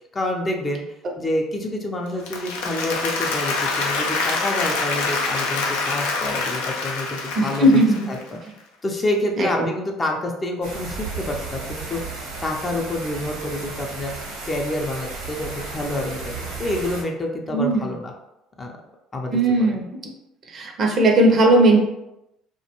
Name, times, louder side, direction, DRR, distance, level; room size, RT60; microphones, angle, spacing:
voice 1, 0.1-0.8 1.2-7.8 8.1-8.4 8.8-12.0 12.4-14.1 14.4-18.1 18.6-18.7 19.1-19.8, left 1 dB, 30° left, 1 dB, 0.5 m, -28 dB
Applause, 2.1-8.3, left 3 dB, 80° left, 0.4 m, -26 dB
voice 2, 7.4-8.0 9.4-9.7 17.5-17.9 19.3-19.9 20.5-21.8, right 1 dB, 50° right, 2 dB, 0.5 m, -17 dB
sound 1, 10.6-17.0, right 3 dB, 80° right, 0.9 m, -34 dB
2.4 x 2.2 x 2.9 m, 0.90 s
hypercardioid pair, 70°, 0 cm